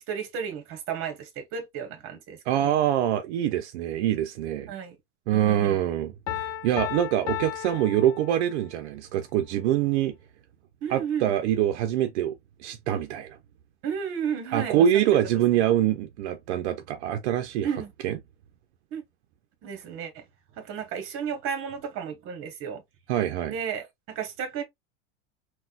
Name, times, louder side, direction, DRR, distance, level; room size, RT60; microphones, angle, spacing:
voice 1, 0.1-2.8 4.7-5.0 5.3-5.8 10.8-11.3 13.8-14.9 17.6-17.9 18.9-19.0 19.6-20.2 20.6-22.8 23.5-24.6, right 7 dB, 40° right, 1.1 m, -33 dB
voice 2, 2.5-4.7 5.3-10.1 10.9-13.4 14.5-17.7 18.0-18.2 23.1-23.5, right 11 dB, 80° right, 0.5 m, -25 dB
Piano, 6.3-8.8, left 11 dB, 75° left, 0.7 m, -34 dB
3.9 x 2.2 x 2.3 m
supercardioid pair, 135°, 34 cm